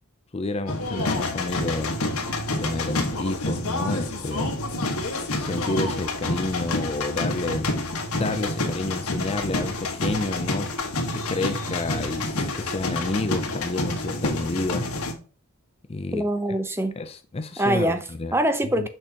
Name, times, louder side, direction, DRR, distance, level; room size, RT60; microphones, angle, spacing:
voice 1, 0.3-2.0 2.6-4.5 5.3-7.8 8.1-10.7 11.1-14.9 15.9-16.2 17.0-18.3 18.8-18.9, left 2 dB, 25° left, 0.5 m, -30 dB
sound 1, 0.7-15.1, left 2 dB, 90° left, 1.6 m, -28 dB
voice 2, 16.1-16.9 17.6-18.9, right 1 dB, 10° right, 0.8 m, -24 dB
6.4 x 6.3 x 2.9 m
head